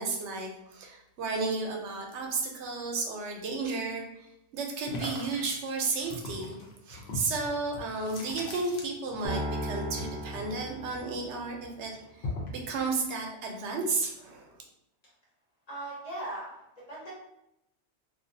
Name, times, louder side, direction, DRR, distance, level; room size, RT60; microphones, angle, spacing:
voice 1, 0.0-14.6, right 3 dB, 85° right, 1 dB, 0.9 m, -33 dB
sound 1, 4.9-9.4 9.6-11.3 11.6-12.6, left 2 dB, 70° left, 0.8 m, -40 dB
sound 2, 9.2-11.6, right 1 dB, 50° right, 0.6 m, -36 dB
voice 2, 15.7-17.1, right 1 dB, 40° left, -6 dB, 0.8 m, -39 dB
2.3 x 2.2 x 2.5 m, 0.84 s
omnidirectional pair, 1.1 m